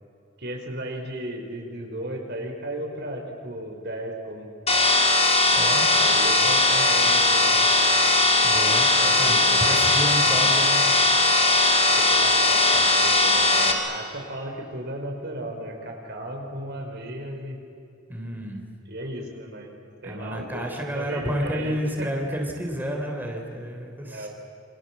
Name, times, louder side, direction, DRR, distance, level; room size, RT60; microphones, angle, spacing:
voice 1, 0.4-4.5 5.9-7.8 9.0-9.8 10.2-10.5 11.1-11.3 11.8-17.6 18.9-19.7 20.0-20.7 20.9-22.1 24.1-24.3, right 1 dB, 60° right, 2 dB, 5.3 m, -35 dB
sound 1, 4.7-13.7, left 2 dB, 35° left, 3.1 m, -19 dB
voice 2, 5.5-5.9 8.4-10.8 18.1-18.6 20.0-24.3, equal, 10° right, 1 dB, 3.5 m, -30 dB
28.5 x 26.0 x 7.7 m, 2.7 s
head